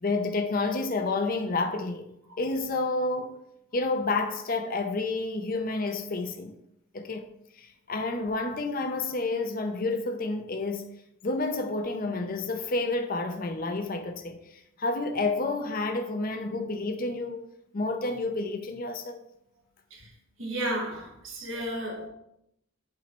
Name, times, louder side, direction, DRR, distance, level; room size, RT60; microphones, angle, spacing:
voice 1, 0.0-2.1 2.4-3.4 3.7-6.5 6.9-7.2 7.6-10.9 11.2-17.4 17.7-19.2, left 3 dB, 45° left, 0.6 m, -30 dB
voice 2, 20.4-22.1, right 1 dB, 70° right, 1.6 m, -33 dB
8.7 x 3.1 x 4.4 m
head